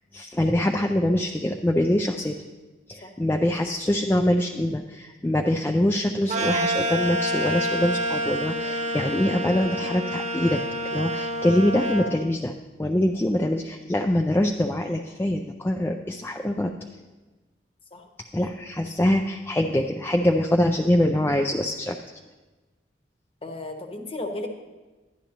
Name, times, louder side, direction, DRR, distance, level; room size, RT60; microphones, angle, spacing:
voice 1, 0.1-2.4 2.9-10.6 10.9-12.5 12.8-16.7 18.3-22.0, left 1 dB, 10° left, 2 dB, 0.3 m, -24 dB
sound 1, 6.3-12.1, equal, 40° right, 0.7 m, -28 dB
voice 2, 23.4-24.5, left 2 dB, 30° left, 4 dB, 0.9 m, -34 dB
12.0 x 10.5 x 2.9 m, 1.2 s
head